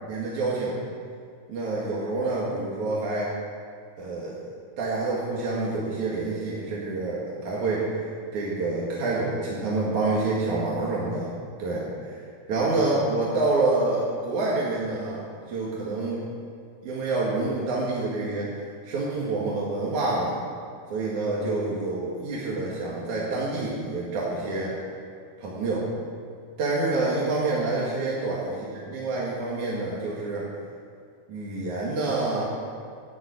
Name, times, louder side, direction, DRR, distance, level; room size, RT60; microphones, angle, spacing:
voice 1, 0.1-0.8 1.5-3.3 4.0-4.3 4.8-8.0 8.3-11.3 11.6-12.2 12.5-15.2 15.5-16.2 16.8-18.5 18.8-20.4 20.9-24.8 25.4-25.9 26.6-30.5 31.3-32.4, right 2 dB, 55° right, -5 dB, 3.2 m, -27 dB
11.5 x 11.0 x 8.5 m, 2.3 s
omnidirectional pair, 4.4 m